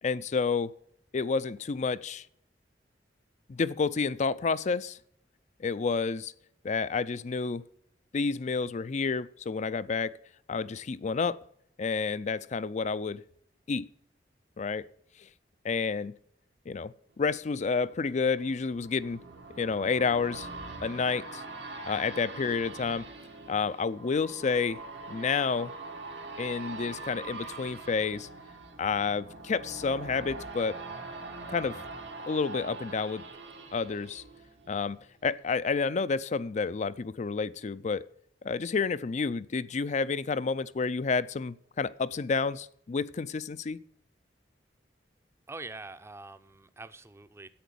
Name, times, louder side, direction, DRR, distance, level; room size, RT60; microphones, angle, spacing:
voice 1, 0.0-0.7 1.1-2.3 3.5-5.0 5.6-6.3 6.6-7.6 8.1-10.2 10.5-11.4 11.8-13.2 13.7-13.9 14.6-14.9 15.6-16.1 16.7-19.2 19.6-20.5 20.8-21.4 21.8-23.1 23.5-24.8 25.1-25.7 26.4-28.3 28.8-30.8 31.5-31.8 32.3-33.2 33.7-34.2 34.7-38.1 38.4-43.8, left 5 dB, 40° left, 0.4 m, -30 dB
sound 1, 17.2-35.0 35.4-35.5, right 3 dB, 85° right, 1.9 m, -43 dB
voice 2, 45.5-47.5, right 3 dB, 15° right, 0.6 m, -44 dB
10.0 x 8.4 x 6.9 m
head